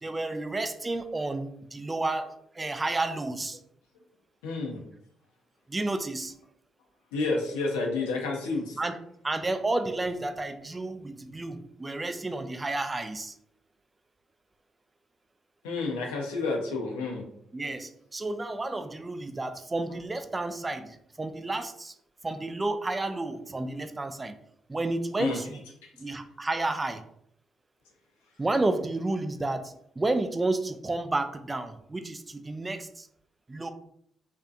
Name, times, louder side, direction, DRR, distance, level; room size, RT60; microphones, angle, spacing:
voice 1, 0.0-2.3 2.6-3.6 5.7-6.4 8.8-9.0 9.2-13.3 17.5-21.9 22.2-24.3 24.7-25.7 26.0-27.0 28.4-33.1 33.5-33.7, right 2 dB, 25° right, 8 dB, 0.3 m, -31 dB
voice 2, 4.4-4.8 7.1-8.8 15.6-17.2 25.2-25.4, left 3 dB, 90° left, 0 dB, 0.5 m, -30 dB
2.5 x 2.2 x 2.5 m, 0.70 s
hypercardioid pair, 50°, 0 cm